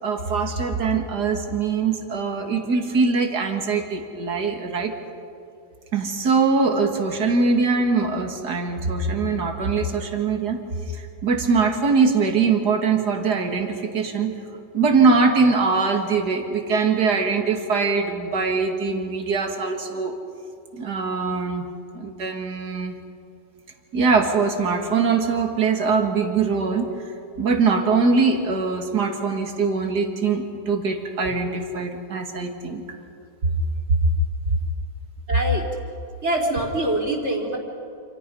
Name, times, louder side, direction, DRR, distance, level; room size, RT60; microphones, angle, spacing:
voice 1, 0.0-4.9 5.9-10.6 10.9-14.3 14.7-20.1 20.7-21.7 21.9-23.0 23.9-26.9 27.4-32.8, right 4 dB, 55° right, 3 dB, 2.7 m, -22 dB
voice 2, 35.3-35.6 36.2-37.6, right 1 dB, 35° right, 1 dB, 4.0 m, -24 dB
28.0 x 28.0 x 5.5 m, 2.6 s
omnidirectional pair, 2.2 m